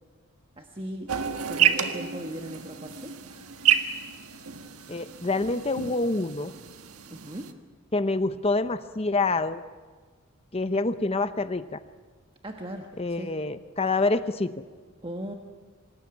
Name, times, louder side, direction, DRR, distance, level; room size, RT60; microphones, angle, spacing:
voice 1, 0.6-1.2 1.5-3.1 7.1-7.5 12.4-13.3 15.0-15.3, equal, 25° right, 3 dB, 1.3 m, -38 dB
sound 1, 1.1-7.5, right 9 dB, 85° right, 1.6 m, -29 dB
voice 2, 4.9-6.5 7.9-9.6 10.5-11.8 13.0-14.5, left 3 dB, 25° left, 11 dB, 0.7 m, -26 dB
25.5 x 19.5 x 9.7 m, 1.5 s
head